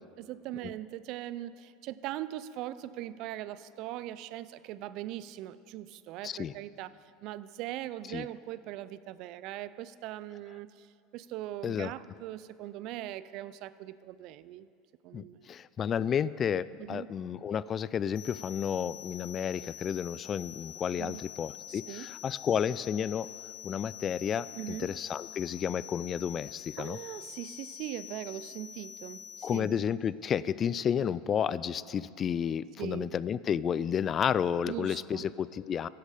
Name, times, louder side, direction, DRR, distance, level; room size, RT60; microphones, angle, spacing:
voice 1, 0.0-6.9 7.2-10.9 11.1-14.7 15.0-15.5 16.8-17.1 21.0-21.2 21.7-22.1 24.6-24.9 26.8-29.7 32.8-33.1 34.7-35.3, right 14 dB, 60° right, 16 dB, 0.4 m, -40 dB
voice 2, 6.2-6.5 8.1-8.3 11.6-11.9 15.1-23.3 23.6-27.0 29.4-35.9, left 8 dB, 35° left, 18 dB, 0.3 m, -31 dB
sound 1, 18.1-29.6, left 12 dB, 65° left, 3.8 m, -46 dB
16.0 x 10.5 x 5.0 m, 2.4 s
hypercardioid pair, 95°, 0 cm